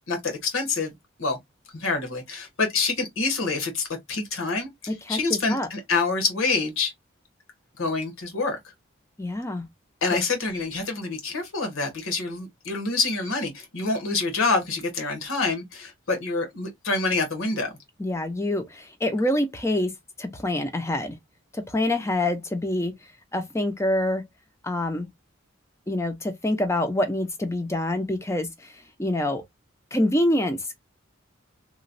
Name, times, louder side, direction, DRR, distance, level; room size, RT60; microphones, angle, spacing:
voice 1, 0.1-0.9 1.2-1.4 1.7-6.9 7.8-8.6 10.0-17.7, left 3 dB, 80° left, 1.2 m, -27 dB
voice 2, 4.9-5.7 9.2-9.7 18.0-19.9 20.2-21.2 21.5-23.0 23.3-24.2 24.6-25.1 25.9-29.4 29.9-30.7, left 1 dB, 15° left, 0.5 m, -26 dB
3.0 x 2.2 x 2.6 m
head